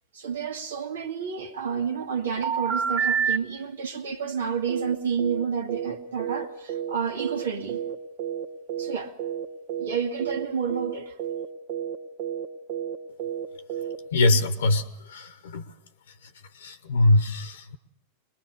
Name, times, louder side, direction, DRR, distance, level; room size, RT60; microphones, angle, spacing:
voice 1, 0.1-7.8 8.8-9.2 9.8-11.2, right 6 dB, 65° right, 1.9 m, -30 dB
sound 1, 2.4-3.4 4.7-8.4 8.7-9.4 9.7-9.9 10.2-10.4 10.7-14.0, right 8 dB, 50° right, 1.5 m, -29 dB
voice 2, 14.1-15.7 16.2-17.8, left 2 dB, 65° left, 1.2 m, -23 dB
23.5 x 21.0 x 6.7 m
figure-of-eight pair, 90°, 0 cm